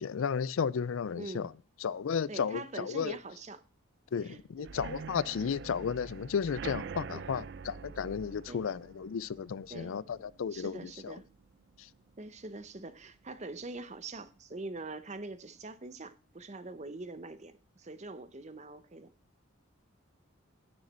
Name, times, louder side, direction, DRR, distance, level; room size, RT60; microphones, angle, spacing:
voice 1, 0.0-1.5 1.8-3.2 4.1-10.8, left 6 dB, 75° left, 0.4 m, -33 dB
voice 2, 1.2-1.5 2.3-3.6 4.2-4.7 7.2-7.5 8.5-8.6 9.7-10.0 10.5-11.3 12.2-19.1, right 2 dB, 35° right, 0.8 m, -44 dB
sound 1, 4.6-12.3 12.6-13.0 13.3-13.4 13.8-13.9, right 5 dB, 55° right, 0.4 m, -46 dB
15.5 x 6.5 x 4.3 m
head